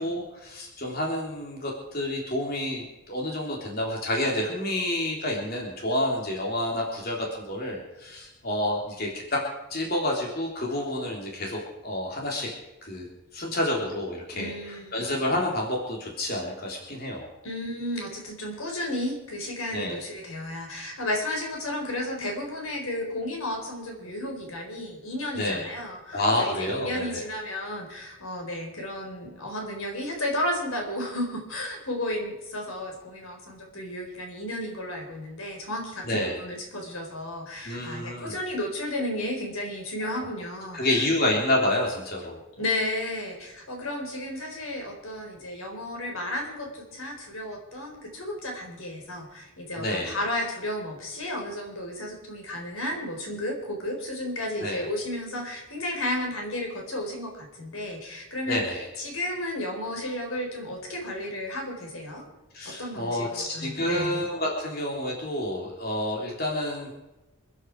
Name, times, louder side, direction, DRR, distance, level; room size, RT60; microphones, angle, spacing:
voice 1, 0.0-9.4 9.7-12.5 12.8-13.1 13.3-17.3 19.7-20.0 25.4-25.6 26.1-27.3 36.1-36.4 37.7-38.4 40.0-40.1 40.7-42.4 49.8-50.2 54.6-54.8 58.5-58.9 62.5-67.0, left 1 dB, 45° left, -2 dB, 3.5 m, -29 dB
voice 2, 14.3-14.9 17.4-41.1 42.6-62.2 62.6-64.2, left 1 dB, 85° left, 1 dB, 4.5 m, -33 dB
27.5 x 10.0 x 4.8 m, 1.0 s
head